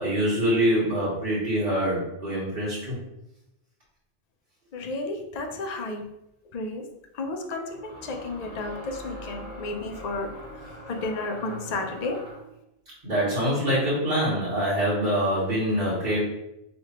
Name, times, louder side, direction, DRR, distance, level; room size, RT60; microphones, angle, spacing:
voice 1, 0.0-3.0 13.0-16.2, equal, 50° right, -11 dB, 1.5 m, -25 dB
voice 2, 4.7-6.0 6.5-6.9 7.2-10.3 10.9-12.2, left 2 dB, 50° left, 4 dB, 0.6 m, -32 dB
sound 1, 7.7-12.5, equal, 65° left, 1.9 m, -42 dB
4.3 x 3.1 x 2.9 m, 0.85 s
omnidirectional pair, 1.1 m